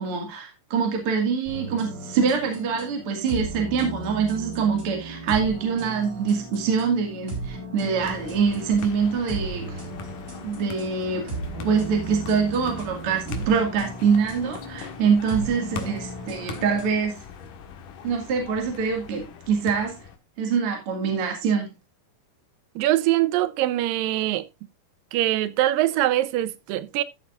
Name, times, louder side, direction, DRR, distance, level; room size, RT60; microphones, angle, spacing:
voice 1, 0.0-9.8 10.4-11.3 11.6-17.1 18.0-19.9 20.4-21.7, right 6 dB, 45° right, 2.8 m, -24 dB
sound 1, 1.5-16.9, right 2 dB, 25° right, 4.4 m, -36 dB
sound 2, 8.0-20.2, left 6 dB, 75° left, 3.0 m, -41 dB
voice 2, 22.8-24.5 25.1-27.0, right 14 dB, 85° right, 2.5 m, -23 dB
14.0 x 8.2 x 2.5 m
omnidirectional pair, 3.8 m